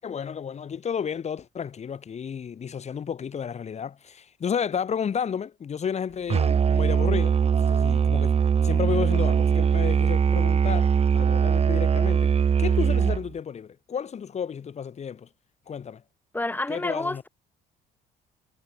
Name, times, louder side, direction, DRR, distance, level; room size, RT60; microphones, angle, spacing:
voice 1, 0.0-15.3 15.7-16.0 16.7-17.2, left 7 dB, 40° left, 6.5 m, -32 dB
Musical instrument, 6.3-13.3, right 7 dB, 40° right, 3.0 m, -21 dB
voice 2, 16.3-17.3, left 2 dB, 10° left, 4.0 m, -29 dB
cardioid pair, 110°, 17 cm